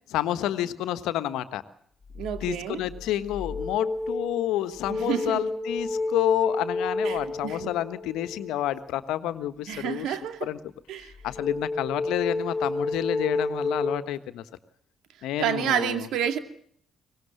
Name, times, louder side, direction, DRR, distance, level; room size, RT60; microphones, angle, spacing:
voice 1, 0.1-1.6 2.4-10.6 11.0-14.4 15.2-16.1, left 13 dB, 70° left, 12 dB, 1.3 m, -29 dB
voice 2, 2.1-2.8 4.9-5.5 7.0-7.7 9.7-10.5 10.9-11.1 15.4-16.4, right 9 dB, 70° right, 7 dB, 2.4 m, -29 dB
sound 1, 2.2-2.5 3.0-8.8 11.3-14.0, left 2 dB, 35° left, 2.4 m, -31 dB
23.5 x 20.5 x 7.4 m, 0.63 s
hypercardioid pair, 45°, 0 cm